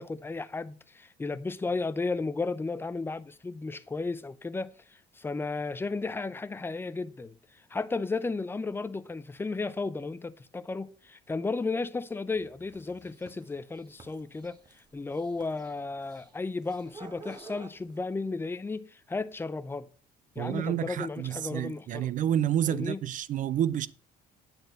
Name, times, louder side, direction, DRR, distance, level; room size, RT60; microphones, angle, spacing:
voice 1, 0.0-14.6 14.9-19.9 20.4-22.1 22.7-23.0, left 3 dB, 15° left, 0.5 m, -34 dB
sound 1, 12.3-18.0, right 3 dB, 25° right, 1.2 m, -50 dB
voice 2, 20.4-23.9, right 10 dB, 50° right, 0.5 m, -29 dB
8.9 x 4.3 x 6.4 m
cardioid pair, 110°, 17 cm